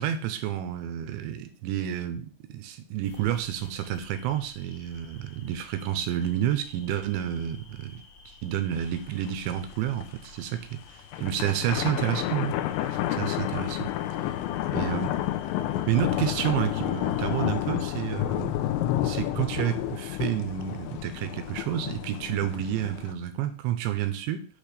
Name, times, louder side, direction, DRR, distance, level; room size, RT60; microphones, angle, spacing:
voice 1, 0.0-10.8 11.2-12.5 12.9-13.9 14.7-15.1 15.9-18.5 19.0-24.5, right 11 dB, 85° right, 8 dB, 2.8 m, -30 dB
sound 1, 3.0-17.5, left 3 dB, 65° left, 1.6 m, -53 dB
sound 2, 8.8-8.9 9.3-9.4 9.9-10.3 11.0-23.1, left 13 dB, 80° left, 2.7 m, -30 dB
8.4 x 3.3 x 6.5 m, 0.41 s
omnidirectional pair, 5.8 m